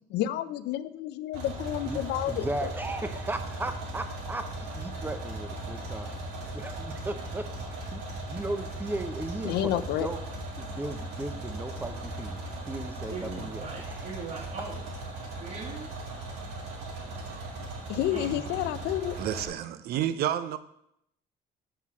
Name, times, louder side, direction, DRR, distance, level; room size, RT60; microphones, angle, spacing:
voice 1, 0.1-2.7 9.4-10.1 17.9-19.2, left 13 dB, 80° left, 0.5 m, -30 dB
sound 1, 1.3-19.5, right 2 dB, 85° right, 1.9 m, -38 dB
voice 2, 2.3-6.2 6.5-8.0 8.3-10.2 10.6-12.4 12.7-14.0 17.9-18.0 18.3-18.4, right 2 dB, 10° right, 0.7 m, -36 dB
voice 3, 13.1-14.8 15.2-15.9 18.1-18.3, right 4 dB, 50° right, 1.9 m, -40 dB
voice 4, 19.2-20.6, right 11 dB, 65° right, 0.6 m, -30 dB
5.6 x 4.5 x 6.0 m
cardioid pair, 110°, 17 cm